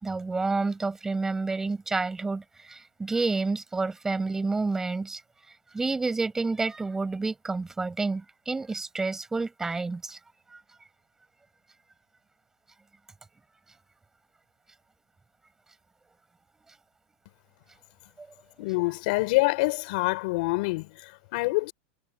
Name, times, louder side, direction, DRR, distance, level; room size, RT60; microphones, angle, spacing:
voice 1, 0.0-5.2 5.7-10.2 18.2-18.3, right 3 dB, 10° right, 6.8 m, -29 dB
voice 2, 18.6-21.7, left 24 dB, 50° left, 5.7 m, -26 dB
supercardioid pair, 170°, 6 cm